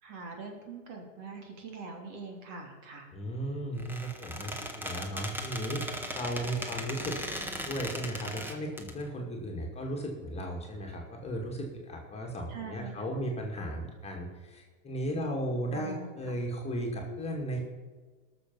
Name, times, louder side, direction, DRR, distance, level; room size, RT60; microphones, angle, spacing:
voice 1, 0.0-3.1 7.0-7.2 12.5-13.3 15.7-16.4, right 4 dB, 45° right, 2 dB, 3.3 m, -43 dB
voice 2, 3.1-7.2 7.7-17.6, right 1 dB, 15° left, 0 dB, 2.2 m, -35 dB
Squeak, 3.8-8.9, equal, 5° right, 1.3 m, -38 dB
19.0 x 6.8 x 5.5 m, 1.4 s
hypercardioid pair, 120°, 40 cm